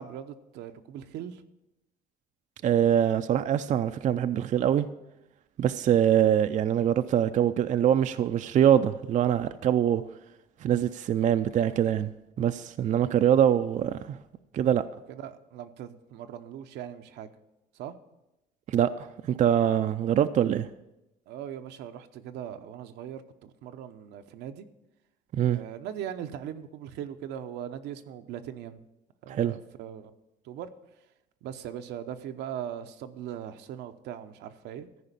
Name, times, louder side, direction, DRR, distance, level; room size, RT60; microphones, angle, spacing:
voice 1, 0.0-1.4 13.0-13.2 15.1-17.3 17.7-17.9 21.3-24.7 25.5-28.8 29.2-30.1 30.4-30.7 31.4-34.9, right 10 dB, 80° right, 0.8 m, -40 dB
voice 2, 2.6-4.9 5.6-10.0 10.6-12.1 12.4-14.2 14.5-14.8 18.7-20.7 25.3-25.6 29.3-29.5, right 10 dB, 45° right, 0.5 m, -24 dB
14.0 x 5.0 x 8.2 m
cardioid pair, 110°, 17 cm